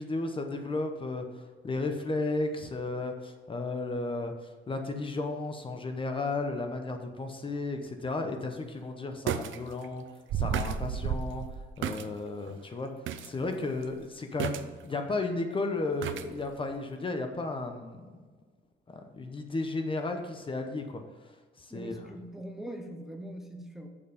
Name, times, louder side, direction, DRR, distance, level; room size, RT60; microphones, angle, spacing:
voice 1, 0.0-10.0 10.3-11.4 11.8-12.9 13.2-18.3 18.9-21.0 21.6-22.0, left 2 dB, 25° left, 5 dB, 0.8 m, -34 dB
sound 1, 8.0-8.1 9.3-9.6 9.8-9.9 10.3-12.1 12.5-12.6 13.1-13.3 13.6-13.8 14.4-15.0 16.0-16.3 16.7-16.8, right 8 dB, 70° right, 0.6 m, -32 dB
voice 2, 21.7-23.9, right 1 dB, ahead, 3 dB, 0.8 m, -42 dB
7.4 x 7.0 x 5.2 m, 1.4 s
cardioid pair, 145°, 20 cm